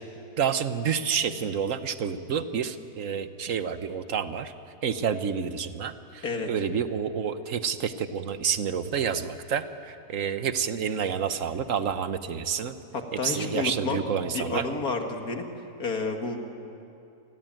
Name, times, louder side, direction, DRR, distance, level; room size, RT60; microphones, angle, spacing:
voice 1, 0.4-4.5 4.8-12.8 13.1-14.7, right 7 dB, 55° right, 11 dB, 1.3 m, -29 dB
voice 2, 13.2-15.5 15.8-16.5, left 3 dB, 60° left, 4 dB, 2.4 m, -30 dB
28.0 x 20.5 x 9.0 m, 2.7 s
omnidirectional pair, 1.8 m